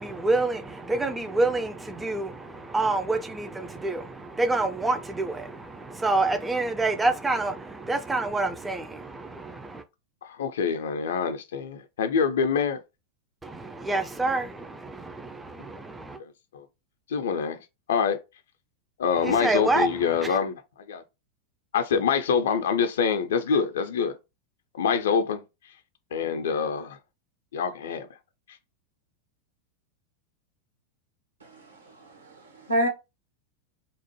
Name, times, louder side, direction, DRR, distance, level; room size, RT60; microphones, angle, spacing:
voice 1, 0.0-9.8 13.4-16.2 19.2-19.9 20.2-20.4, right 2 dB, 10° right, 0.4 m, -27 dB
voice 2, 10.2-12.8 16.2-16.7 17.1-18.2 19.0-21.0 21.7-24.2 24.7-25.8 26.1-27.0 27.5-28.1 28.5-28.6, left 6 dB, 60° left, 0.4 m, -26 dB
voice 3, 31.4-32.9, equal, 75° right, 1.1 m, -29 dB
2.9 x 2.0 x 3.0 m
figure-of-eight pair, 90°, 0 cm